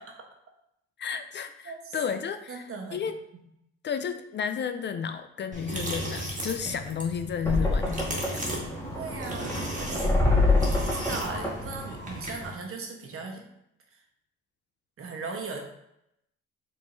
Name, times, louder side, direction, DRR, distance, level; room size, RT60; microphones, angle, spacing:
voice 1, 1.0-3.2 3.8-8.4, left 7 dB, 40° left, 9 dB, 0.4 m, -32 dB
voice 2, 1.6-2.0 2.5-3.4 8.9-10.1 10.8-13.4 13.9-14.0 15.0-15.6, right 4 dB, 50° right, 2 dB, 1.1 m, -38 dB
sound 1, 5.5-12.5, right 1 dB, 25° right, 1.6 m, -36 dB
sound 2, 7.4-12.4, left 2 dB, 10° left, 1.6 m, -27 dB
4.7 x 3.7 x 2.6 m, 0.79 s
supercardioid pair, 80°, 29 cm